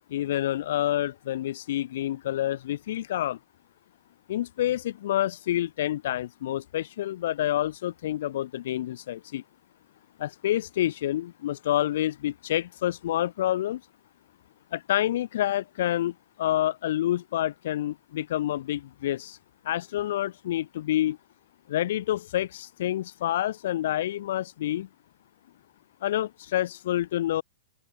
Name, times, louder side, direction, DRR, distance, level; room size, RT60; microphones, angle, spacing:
voice 1, 0.1-3.4 4.3-9.4 10.2-13.8 14.7-19.4 19.6-21.2 21.7-24.9 26.0-27.4, left 13 dB, 60° left, 5.4 m, -28 dB
open air
hypercardioid pair, 150°, 0 cm